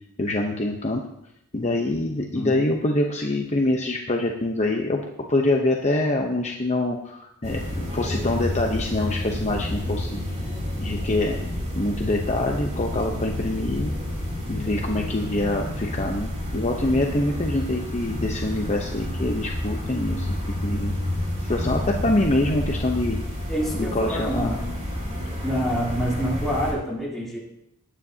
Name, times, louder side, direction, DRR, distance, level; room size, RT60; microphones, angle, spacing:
voice 1, 0.2-1.0 1.5-5.0 5.3-10.2 10.8-11.4 11.8-13.9 14.5-20.9 21.4-23.2 23.7-24.5, left 2 dB, 30° left, 1 dB, 0.9 m, -25 dB
sound 1, 7.4-26.7, left 1 dB, 30° right, 5.4 m, -29 dB
voice 2, 23.5-24.6 25.4-27.4, equal, ahead, -6 dB, 3.2 m, -27 dB
18.5 x 9.6 x 2.8 m, 0.81 s
head